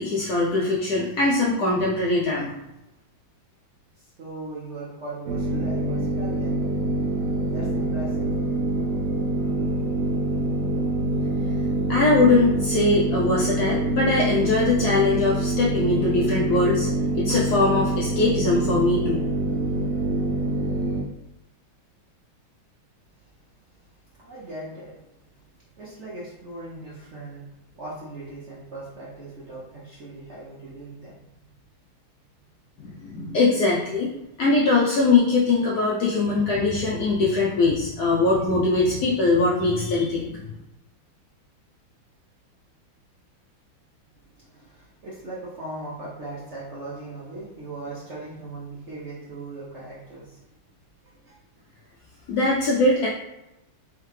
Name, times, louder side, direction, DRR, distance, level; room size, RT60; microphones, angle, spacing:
voice 1, 0.0-2.5 11.9-16.9 17.1-19.2 32.8-34.1 34.4-40.6 52.3-53.1, left 3 dB, 75° left, -4 dB, 0.9 m, -21 dB
voice 2, 4.0-6.6 7.5-8.3 23.2-23.3 24.1-25.4 25.8-31.5 44.4-50.4 51.2-51.4, right 2 dB, 65° right, -7 dB, 0.7 m, -39 dB
sound 1, 5.3-21.0, right 2 dB, 80° right, 1.7 m, -25 dB
3.6 x 3.3 x 3.2 m, 0.91 s
omnidirectional pair, 2.3 m